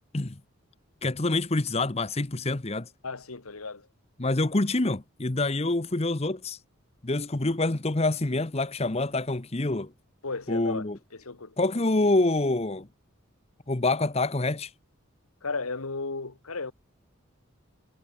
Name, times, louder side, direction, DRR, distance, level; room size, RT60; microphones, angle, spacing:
voice 1, 1.0-2.9 4.2-6.6 7.0-9.9 10.5-11.0 11.6-12.9 13.7-14.7, left 2 dB, 30° left, 0.9 m, -26 dB
voice 2, 3.0-3.9 10.2-11.5 15.4-16.7, left 3 dB, 90° left, 1.7 m, -35 dB
head